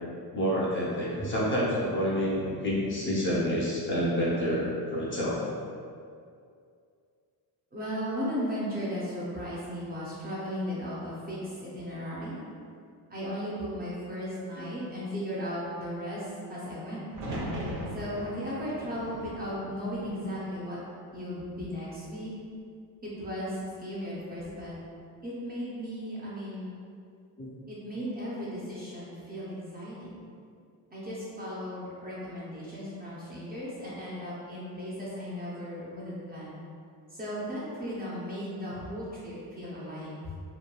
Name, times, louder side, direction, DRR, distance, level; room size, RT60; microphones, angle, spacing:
voice 1, 0.3-4.6 4.9-5.4 27.4-27.5, equal, 30° left, -6 dB, 0.6 m, -28 dB
voice 2, 7.7-12.4 13.1-17.1 17.9-20.8 21.1-22.3 23.0-24.7 25.2-26.7 27.7-30.2 30.9-36.6 37.1-40.3, equal, 25° right, -8 dB, 0.5 m, -36 dB
sound 1, 17.1-21.2 21.5-22.3 24.2-24.6, equal, 65° right, 0.7 m, -40 dB
3.0 x 2.2 x 2.2 m, 2.3 s
cardioid pair, 110°, 41 cm